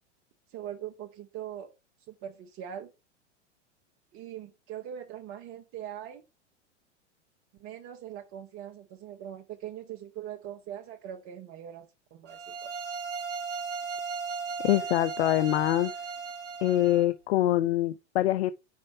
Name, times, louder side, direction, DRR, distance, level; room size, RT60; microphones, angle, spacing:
voice 1, 0.5-1.7 2.1-2.9 4.1-6.2 7.6-12.7, right 10 dB, 35° right, 0.9 m, -41 dB
sound 1, 12.3-17.1, right 5 dB, 85° right, 1.1 m, -36 dB
voice 2, 14.6-15.9 16.6-18.5, left 14 dB, 65° left, 0.5 m, -24 dB
5.3 x 3.5 x 5.6 m
hypercardioid pair, 100°, 36 cm